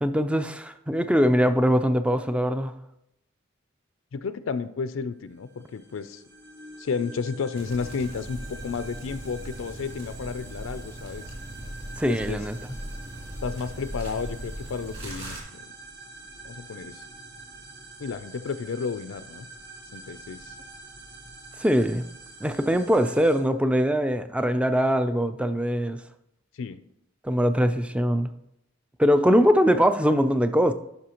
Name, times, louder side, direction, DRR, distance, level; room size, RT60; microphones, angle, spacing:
voice 1, 0.0-2.8 12.0-12.6 21.6-22.0 22.4-26.0 27.2-28.3 29.0-30.7, equal, 5° right, 10 dB, 0.4 m, -22 dB
voice 2, 4.1-6.2 6.8-11.3 12.0-12.4 13.4-15.6 16.4-17.0 18.0-19.5 19.9-20.5 26.5-26.8, left 5 dB, 75° left, 12 dB, 0.4 m, -32 dB
sound 1, 5.3-23.4, right 3 dB, 60° right, 1.5 m, -46 dB
sound 2, 7.6-15.4, right 1 dB, 30° right, 2.7 m, -39 dB
11.0 x 5.5 x 2.9 m, 0.81 s
head